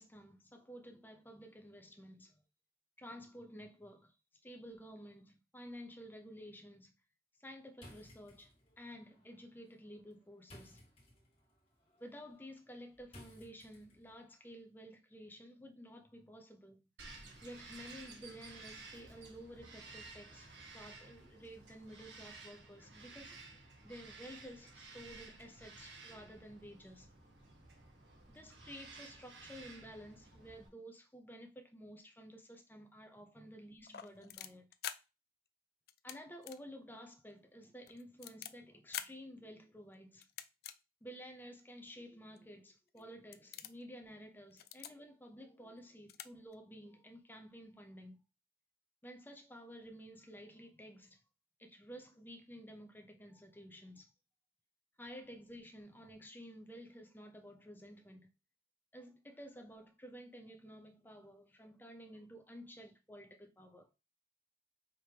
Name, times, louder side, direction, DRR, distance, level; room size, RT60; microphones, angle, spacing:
voice 1, 0.0-2.3 3.0-4.1 4.4-6.9 7.4-10.8 12.0-16.8 17.4-27.1 28.3-34.7 36.0-40.3 41.0-48.2 49.0-51.2 51.6-54.1 55.0-58.3 58.9-63.9, equal, 10° left, 0.7 m, -52 dB
sound 1, 7.7-14.2, left 1 dB, 35° left, 1.7 m, -60 dB
Bird vocalization bird call bird song, 17.0-30.7, right 3 dB, 90° right, 1.3 m, -54 dB
sound 2, 33.8-35.0 35.9-36.2 36.4-36.6 37.0-37.1 37.6-38.5 38.9-39.1 40.2-40.7 41.4-41.5 42.4-42.5 42.9-43.0 43.3-43.8 44.5-44.9 45.8-45.9 46.1-46.3 46.5-46.6, left 10 dB, 60° left, 0.4 m, -45 dB
5.1 x 3.1 x 2.9 m
head